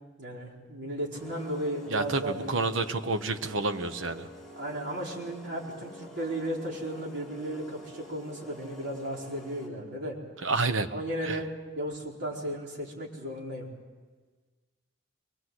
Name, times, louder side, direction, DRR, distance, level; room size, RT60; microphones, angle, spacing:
voice 1, 0.2-2.8 4.6-10.2 10.9-11.4 11.8-13.7, right 1 dB, 60° right, -2 dB, 4.8 m, -35 dB
sound 1, 1.1-9.9, left 1 dB, ahead, 4.9 m, -47 dB
voice 2, 1.9-4.3 10.4-10.9 11.2-11.4, right 3 dB, 75° right, 9 dB, 1.1 m, -29 dB
23.5 x 21.5 x 7.9 m, 1.4 s
head